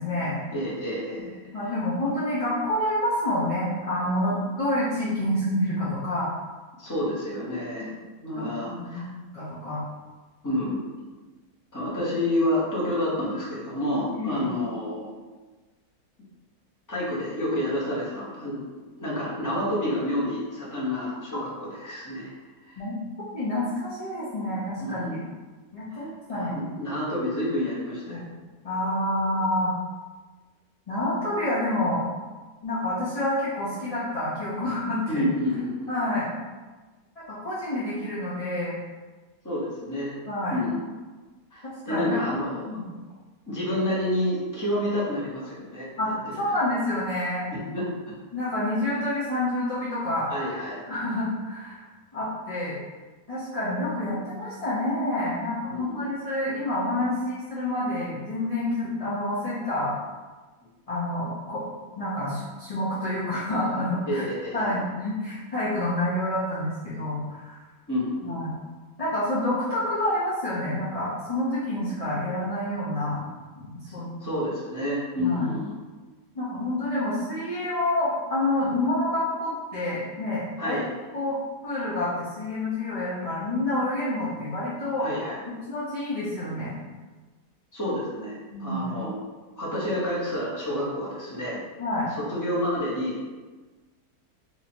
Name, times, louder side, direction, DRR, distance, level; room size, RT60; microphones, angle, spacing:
voice 1, 0.0-0.4 1.2-6.3 7.7-7.9 8.4-9.0 9.3-9.8 14.1-14.5 22.8-22.9 23.3-25.2 25.7-26.7 28.1-28.3 28.6-29.7 30.9-32.0 32.6-35.2 35.9-36.3 37.3-38.8 40.2-40.6 41.6-42.2 42.6-42.9 46.0-47.5 48.3-50.3 50.9-51.8 52.1-52.8 53.3-60.0 60.9-61.6 62.0-64.3 64.5-67.6 68.2-68.5 69.0-73.3 73.6-74.3 75.2-75.5 76.3-80.8 81.1-81.4 81.6-85.1 85.5-86.7 88.5-88.8 91.8-92.1, left 1 dB, 40° left, -11 dB, 0.5 m, -28 dB
voice 2, 0.5-1.3 1.6-1.7 6.8-7.9 8.2-9.0 10.4-10.8 11.7-15.1 16.9-18.6 19.0-22.3 22.7-22.8 24.8-25.3 25.9-26.1 26.3-28.3 35.1-35.9 39.4-40.2 40.5-40.8 41.5-42.7 43.5-46.6 47.5-47.9 50.3-50.8 55.7-56.1 64.1-64.7 67.9-68.4 73.8-73.9 74.2-75.7 80.6-80.9 85.0-85.4 87.7-89.2 89.6-91.6 92.1-93.3, left 1 dB, 15° left, -8 dB, 0.9 m, -29 dB
3.0 x 2.7 x 4.3 m, 1.3 s
omnidirectional pair, 1.6 m